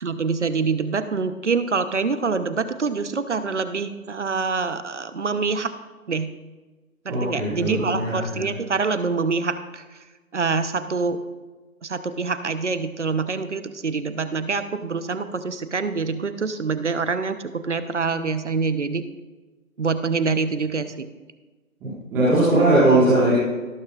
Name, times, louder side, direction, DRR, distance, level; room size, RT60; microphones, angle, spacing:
voice 1, 0.0-5.7 6.1-6.3 7.0-9.8 10.3-11.2 11.8-19.0 19.8-21.1, right 4 dB, 55° right, 11 dB, 0.9 m, -25 dB
voice 2, 7.1-8.4 22.1-23.3, right 2 dB, 5° right, -11 dB, 1.6 m, -19 dB
18.0 x 8.6 x 2.4 m, 1.3 s
figure-of-eight pair, 160°, 43 cm